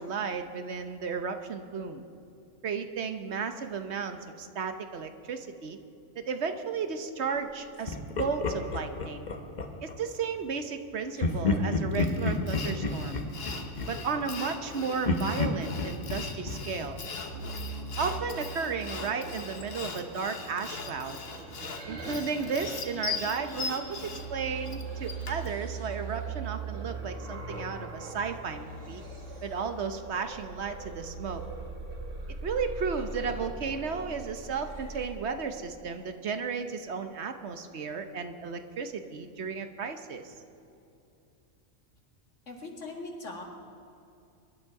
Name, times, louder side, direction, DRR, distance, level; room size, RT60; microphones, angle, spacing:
voice 1, 0.0-2.0 2.6-5.8 6.2-9.3 9.8-13.2 13.9-17.0 18.0-21.2 21.9-29.0 29.4-31.4 32.4-40.3, right 5 dB, 65° right, 8 dB, 1.2 m, -34 dB
Laughter, 7.9-10.0 11.2-14.7 15.0-17.8, left 3 dB, 40° left, 1.1 m, -31 dB
Sawing, 12.0-25.5, left 4 dB, 55° left, 1.4 m, -40 dB
sound 1, 17.3-35.1, right 4 dB, 90° right, 2.3 m, -40 dB
voice 2, 42.5-43.4, left 2 dB, 85° left, 1 dB, 2.5 m, -40 dB
23.5 x 11.5 x 4.8 m, 2.6 s
omnidirectional pair, 1.2 m